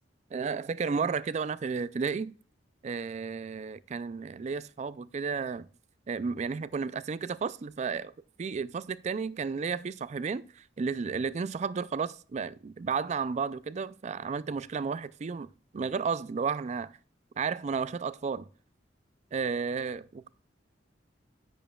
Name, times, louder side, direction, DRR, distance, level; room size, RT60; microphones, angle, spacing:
voice 1, 0.3-2.3 2.8-5.7 6.1-8.1 8.4-16.9 17.4-18.5 19.3-20.3, right 5 dB, 35° right, 0.3 m, -33 dB
10.0 x 8.9 x 2.3 m
head